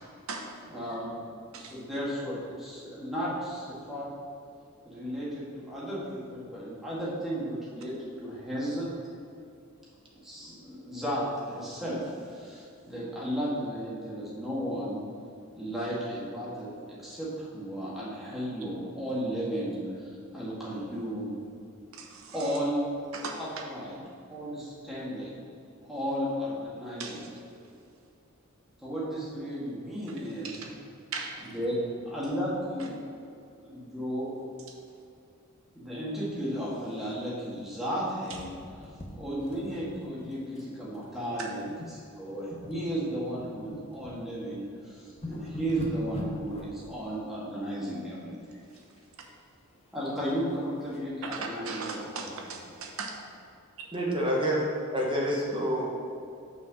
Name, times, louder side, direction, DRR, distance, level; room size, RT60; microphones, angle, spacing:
voice 1, 0.7-1.2 1.5-4.1 4.8-8.9 10.2-15.0 15.6-21.4 22.3-22.8 23.4-24.0 24.3-25.4 25.8-27.2 28.8-30.7 31.4-32.9 33.6-34.4 35.7-38.5 39.1-48.6 49.9-52.3, equal, ahead, -8 dB, 1.8 m, -34 dB
voice 2, 21.9-22.6 23.1-23.4 27.0-27.3 30.4-30.7 31.1-31.5 32.8-32.9 41.4-41.5 51.3-53.2, right 4 dB, 70° right, 1 dB, 1.0 m, -38 dB
sound 1, 38.3-40.7 40.9-41.2 41.7-42.0 42.3-44.2 44.7-44.8 45.0-46.9 48.7-49.3 49.6-51.1 51.6-51.7 51.9-52.0 52.5-52.6, left 1 dB, 30° left, 0.7 m, -41 dB
voice 3, 53.9-56.0, equal, 25° right, -3 dB, 1.2 m, -28 dB
5.9 x 4.6 x 6.3 m, 2.5 s
head